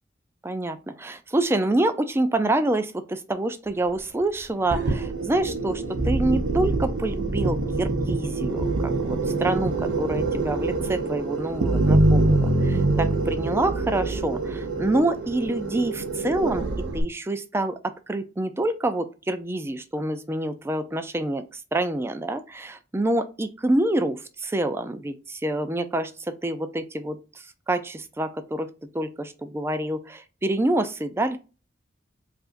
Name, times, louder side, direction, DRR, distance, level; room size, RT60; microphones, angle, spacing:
voice 1, 0.4-9.7 10.0-16.7 16.9-27.2 27.7-28.7 28.9-31.4, right 1 dB, 15° right, 9 dB, 0.4 m, -27 dB
sound 1, 4.7-17.0, right 2 dB, 85° right, 0.6 m, -25 dB
4.8 x 2.5 x 2.5 m, 0.32 s
head